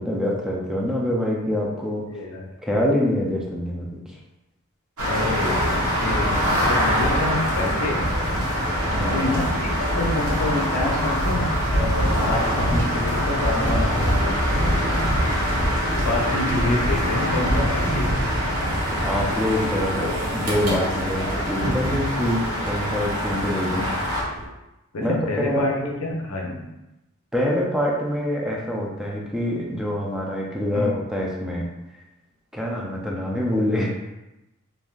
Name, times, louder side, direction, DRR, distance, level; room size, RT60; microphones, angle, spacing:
voice 1, 0.0-2.0 2.6-4.0 8.9-9.3 14.7-15.2 19.0-23.9 25.0-26.0 27.3-31.7 32.5-33.9, left 1 dB, 5° right, -3 dB, 0.5 m, -25 dB
voice 2, 2.1-2.5 5.0-8.1 9.1-14.4 16.0-18.2 23.7-23.9 24.9-25.7 26.0-26.6 30.7-30.9, left 2 dB, 80° left, 0 dB, 0.6 m, -27 dB
sound 1, 5.0-24.2, equal, 85° right, 0.8 m, -24 dB
sound 2, 6.5-24.5, right 1 dB, 40° right, 0.8 m, -34 dB
3.2 x 2.5 x 2.4 m, 0.97 s
head